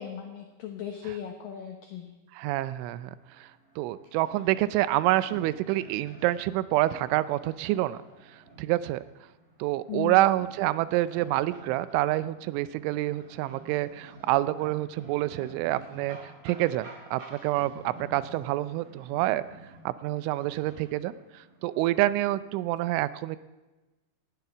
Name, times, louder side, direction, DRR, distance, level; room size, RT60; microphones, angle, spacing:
voice 1, 0.0-2.1 9.9-10.2, left 9 dB, 80° left, 4 dB, 2.0 m, -37 dB
voice 2, 2.4-3.5 3.8-8.0 8.6-9.0 9.6-19.4 19.9-23.4, right 16 dB, 85° right, 15 dB, 3.1 m, -27 dB
sound 1, 3.1-22.6, right 2 dB, 50° right, 7.3 m, -51 dB
18.5 x 12.5 x 6.0 m, 1.1 s
omnidirectional pair, 5.5 m